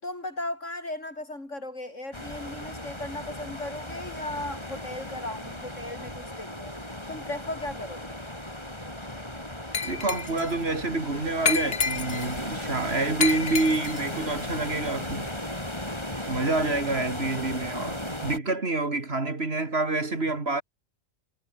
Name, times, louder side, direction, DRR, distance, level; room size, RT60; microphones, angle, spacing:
voice 1, 0.0-6.7 7.1-8.2, left 1 dB, 65° left, 6.4 m, -36 dB
sound 1, 2.1-18.4, left 1 dB, 20° left, 5.4 m, -36 dB
Glass, 9.7-10.5 11.5-12.4 13.2-14.1, left 5 dB, 45° left, 1.6 m, -29 dB
voice 2, 9.8-15.3 16.3-20.6, right 3 dB, 50° right, 2.9 m, -28 dB
omnidirectional pair, 1.4 m